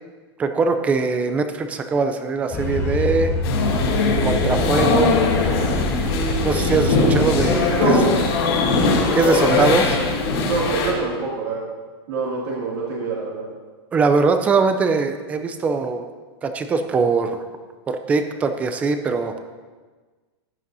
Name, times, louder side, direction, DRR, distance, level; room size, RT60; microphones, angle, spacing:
voice 1, 0.4-3.3 4.2-5.1 6.4-8.0 9.1-9.9 13.9-16.1 16.4-17.4 17.9-19.3, right 4 dB, 10° right, 8 dB, 0.4 m, -21 dB
sound 1, 2.5-7.6, left 2 dB, 15° left, 0.8 m, -26 dB
sound 2, 3.4-10.9, left 3 dB, 60° left, 2.8 m, -20 dB
voice 2, 7.8-8.1 9.2-9.6 10.5-11.6 12.1-13.4, right 3 dB, 60° right, -6 dB, 2.4 m, -25 dB
15.0 x 10.0 x 2.7 m, 1.4 s
supercardioid pair, 175°, 14 cm